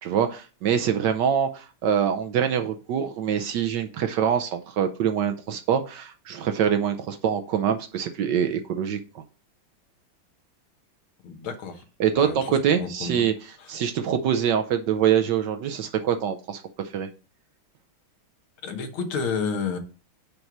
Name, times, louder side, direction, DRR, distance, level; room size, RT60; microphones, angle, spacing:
voice 1, 0.0-9.2 12.0-13.3 13.7-16.6 16.9-17.1, right 8 dB, 70° right, 1.1 m, -24 dB
voice 2, 11.2-11.8 12.1-13.3 13.6-13.8 18.6-19.8, left 5 dB, 80° left, 1.9 m, -31 dB
5.3 x 4.6 x 5.8 m
omnidirectional pair, 2.2 m